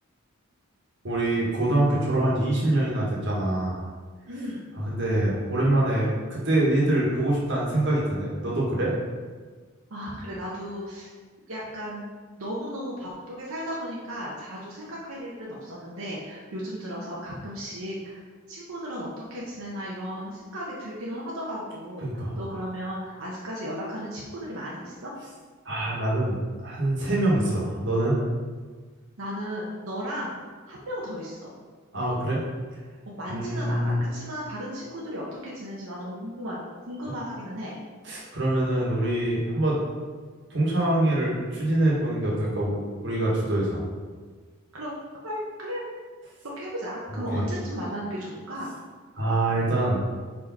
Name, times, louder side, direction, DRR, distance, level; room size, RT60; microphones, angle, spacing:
voice 1, 1.0-3.8 4.8-8.9 22.0-22.4 25.6-26.4 26.6-28.2 31.9-32.4 33.3-34.0 38.0-39.8 40.5-42.8 43.0-43.8 47.3-47.4 49.2-50.0, right 1 dB, 55° right, -5 dB, 1.5 m, -24 dB
voice 2, 4.3-4.6 9.9-11.1 11.5-12.1 12.4-25.1 29.2-31.5 33.1-37.8 44.7-44.9 45.2-45.8 46.4-48.7, equal, 80° right, -5 dB, 1.0 m, -35 dB
5.0 x 4.7 x 4.2 m, 1.5 s
head